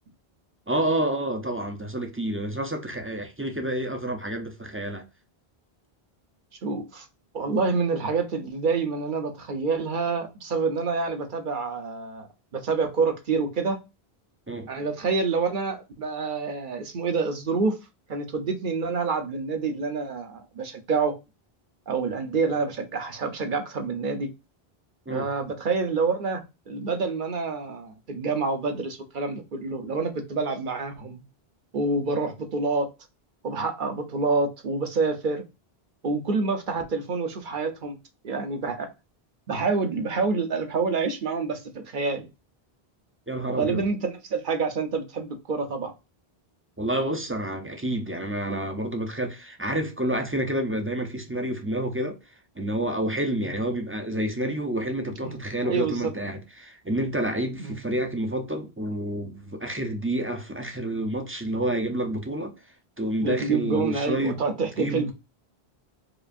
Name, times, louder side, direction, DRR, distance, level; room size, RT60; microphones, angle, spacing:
voice 1, 0.7-5.0 14.5-14.7 25.1-25.3 43.3-43.8 46.8-52.2 52.6-62.5 63.0-64.4 64.8-65.1, right 1 dB, 20° right, 0.4 m, -29 dB
voice 2, 6.6-7.1 7.3-12.3 12.5-13.8 14.7-17.8 18.1-21.1 21.9-24.3 25.1-31.2 31.7-32.9 33.4-35.4 36.0-38.0 38.2-38.9 39.5-42.3 43.5-45.9 53.4-53.5 55.2-55.4 55.6-56.1 57.6-57.8 63.2-65.1, right 4 dB, 55° right, 0.8 m, -27 dB
4.8 x 2.5 x 2.5 m
omnidirectional pair, 1.1 m